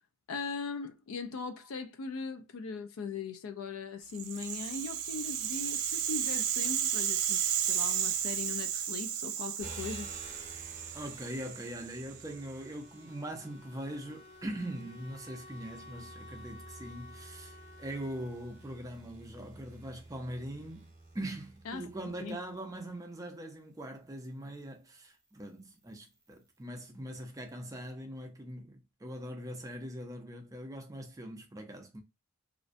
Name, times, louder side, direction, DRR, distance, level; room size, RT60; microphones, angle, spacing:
voice 1, 0.3-10.1 21.7-22.4, left 4 dB, 75° left, 0.4 m, -40 dB
Rattle (instrument), 4.1-12.3, right 9 dB, 90° right, 0.4 m, -33 dB
sound 1, 9.6-23.0 23.7-26.6, right 2 dB, 35° right, 0.7 m, -53 dB
voice 2, 10.9-20.9 21.1-32.0, right 1 dB, 15° right, 0.4 m, -42 dB
Wind instrument woodwind instrument, 11.4-20.1, left 3 dB, 35° left, 0.7 m, -55 dB
2.5 x 2.1 x 2.5 m
head